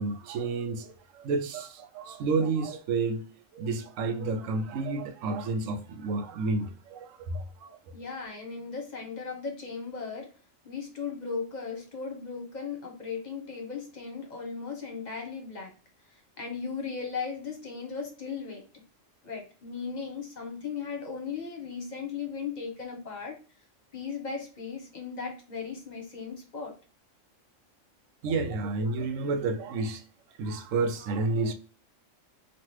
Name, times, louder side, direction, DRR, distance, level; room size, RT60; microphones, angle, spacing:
voice 1, 0.0-3.2 3.5-7.8 28.2-30.0 30.4-31.5, right 3 dB, 90° right, 1.0 m, -30 dB
voice 2, 7.9-10.3 10.6-15.7 16.1-18.7 19.2-23.4 23.9-26.8, left 5 dB, 40° left, 0.8 m, -37 dB
3.0 x 2.5 x 3.0 m
omnidirectional pair, 1.3 m